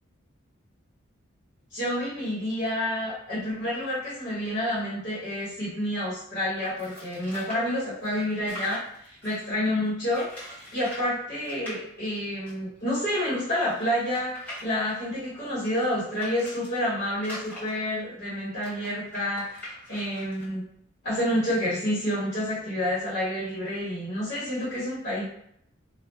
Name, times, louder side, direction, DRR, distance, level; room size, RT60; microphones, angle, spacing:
voice 1, 1.7-10.3 10.7-20.6 21.0-25.2, left 1 dB, 50° left, -10 dB, 1.1 m, -29 dB
sound 1, 6.6-9.5 10.1-11.1 11.4-11.8 12.5-12.6 12.8-12.9 13.4-16.7 17.2-20.5, equal, 5° left, 0.9 m, -43 dB
2.3 x 2.1 x 3.2 m, 0.71 s
head